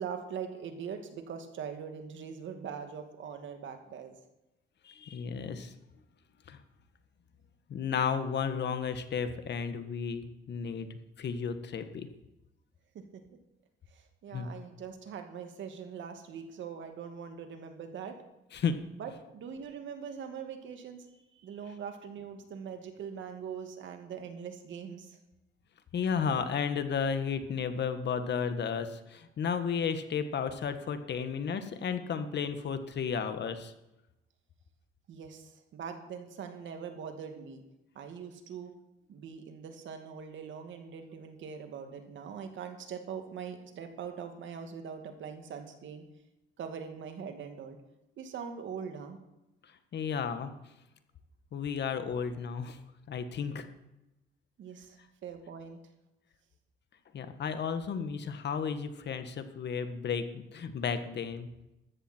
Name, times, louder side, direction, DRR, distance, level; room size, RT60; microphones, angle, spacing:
voice 1, 0.0-4.1 12.9-13.2 13.9-18.2 19.0-25.2 35.1-37.6 38.0-38.7 39.1-46.0 46.6-47.8 48.2-49.2 54.6-55.8, right 7 dB, 70° right, 6 dB, 2.3 m, -42 dB
voice 2, 4.8-5.7 6.5-6.6 7.7-12.1 14.3-14.5 18.5-18.8 25.9-33.7 49.6-50.5 51.5-52.8 53.1-53.7 57.1-61.5, left 6 dB, 60° left, 9 dB, 1.6 m, -33 dB
14.0 x 13.5 x 4.5 m, 0.93 s
cardioid pair, 90°, 20 cm